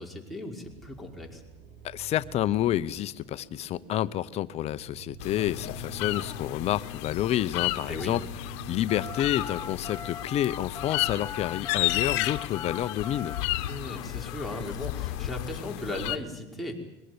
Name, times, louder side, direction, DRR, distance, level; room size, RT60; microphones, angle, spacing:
voice 1, 0.0-1.4 7.9-8.2 13.7-16.8, left 1 dB, ahead, -1 dB, 5.2 m, -37 dB
sound 1, 0.6-11.3, right 7 dB, 50° right, 5.5 m, -48 dB
voice 2, 1.8-13.4, left 12 dB, 45° left, 14 dB, 0.8 m, -29 dB
sound 2, 5.2-16.2, left 17 dB, 75° left, 1.2 m, -33 dB
Telephone, 8.9-15.7, left 6 dB, 25° left, 1.6 m, -41 dB
22.5 x 18.5 x 9.7 m, 0.96 s
supercardioid pair, 110°, 14 cm